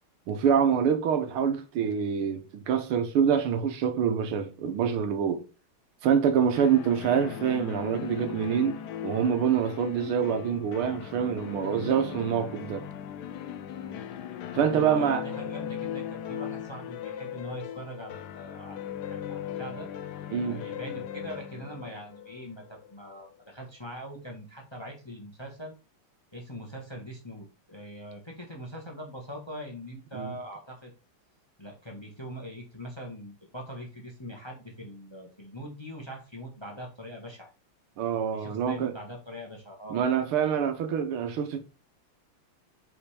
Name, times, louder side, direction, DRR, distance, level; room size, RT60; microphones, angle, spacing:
voice 1, 0.3-5.4 6.0-12.8 14.5-15.2 20.3-20.6 30.1-30.4 38.0-38.9 39.9-41.6, right 7 dB, 85° right, 1.9 m, -26 dB
sound 1, 6.6-23.3, left 9 dB, 70° left, 1.0 m, -38 dB
voice 2, 14.5-19.9 20.4-25.7 26.3-30.9 31.6-37.5 38.3-40.0, equal, 15° left, 1.3 m, -42 dB
5.7 x 4.4 x 4.9 m
omnidirectional pair, 2.4 m